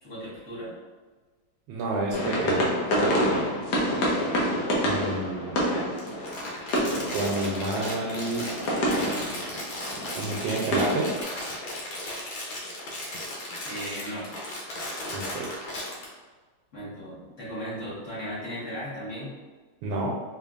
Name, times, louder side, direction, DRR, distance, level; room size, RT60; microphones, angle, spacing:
voice 1, 0.0-0.7 5.6-5.9 13.6-14.3 16.7-19.3, equal, 40° left, -10 dB, 1.7 m, -36 dB
voice 2, 1.7-2.7 4.8-5.6 7.1-8.5 10.2-11.1 15.1-15.5 19.8-20.1, right 2 dB, 80° right, -2 dB, 1.3 m, -29 dB
sound 1, 2.1-11.2, equal, 65° left, 1.3 m, -28 dB
Crumpling crinkling, 6.0-16.1, left 1 dB, 90° left, 1.6 m, -36 dB
4.3 x 2.9 x 2.4 m, 1.4 s
omnidirectional pair, 2.1 m